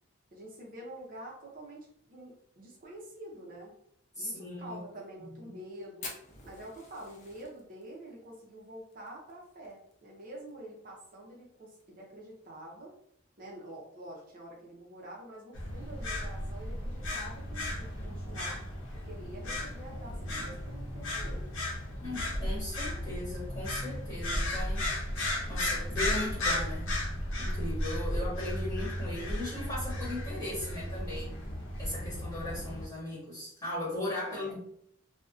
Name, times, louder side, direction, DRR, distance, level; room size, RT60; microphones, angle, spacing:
voice 1, 0.3-3.7 4.2-6.1 6.4-12.9 13.4-18.6 19.0-21.5 34.2-34.5, right 1 dB, 45° right, -3 dB, 0.5 m, -47 dB
voice 2, 4.1-4.8 5.2-5.5 22.0-24.9 25.5-26.9 27.4-31.3 31.8-34.6, left 1 dB, 20° left, -8 dB, 1.4 m, -38 dB
Fire, 6.0-10.5 10.8-10.9 11.1-11.2 11.6-12.0 12.5-12.6 13.7-13.8, left 3 dB, 35° left, 0.5 m, -47 dB
sound 1, 15.5-32.9, left 1 dB, 85° left, 0.7 m, -34 dB
2.5 x 2.1 x 2.4 m, 0.70 s
head